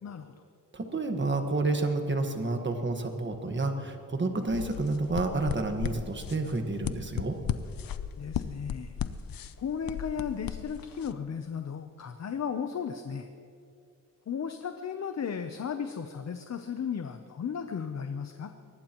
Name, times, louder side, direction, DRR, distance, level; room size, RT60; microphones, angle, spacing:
voice 1, 0.0-0.3 8.2-8.9 9.6-13.3 14.3-18.5, left 7 dB, 50° left, 7 dB, 0.7 m, -35 dB
voice 2, 0.7-7.4, right 3 dB, 35° right, 5 dB, 1.5 m, -30 dB
sound 1, 4.5-11.1, left 9 dB, 90° left, 0.6 m, -36 dB
23.5 x 19.5 x 3.0 m, 2.4 s
wide cardioid pair, 150°, 33 cm